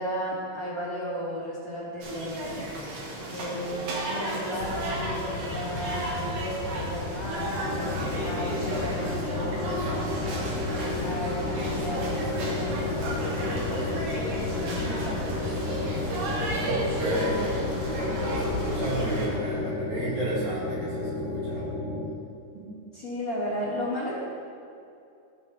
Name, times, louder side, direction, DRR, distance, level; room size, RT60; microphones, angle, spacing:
voice 1, 0.0-2.7 3.3-9.7 10.4-15.3 22.9-24.1, equal, 40° left, -9 dB, 1.3 m, -34 dB
sound 1, 2.0-19.3, right 1 dB, 85° right, 3.0 m, -34 dB
sound 2, 4.6-19.4, left 4 dB, 85° left, 2.9 m, -35 dB
sound 3, 7.6-22.1, left 2 dB, 25° left, 1.5 m, -33 dB
voice 2, 16.6-21.7 22.5-22.7, right 1 dB, 65° right, -7 dB, 3.5 m, -32 dB
14.5 x 6.4 x 3.3 m, 2.5 s
omnidirectional pair, 3.9 m